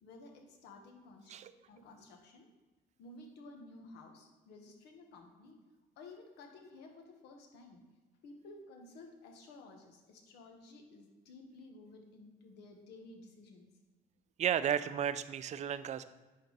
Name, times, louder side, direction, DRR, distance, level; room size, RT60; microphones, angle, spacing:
voice 1, 0.0-1.4 1.7-2.5 3.0-5.6 6.0-7.8 8.2-13.7, left 2 dB, 80° left, 3 dB, 1.4 m, -54 dB
voice 2, 14.4-16.0, right 9 dB, 45° right, 13 dB, 0.4 m, -33 dB
10.0 x 3.8 x 4.0 m, 1.2 s
cardioid pair, 110°, 17 cm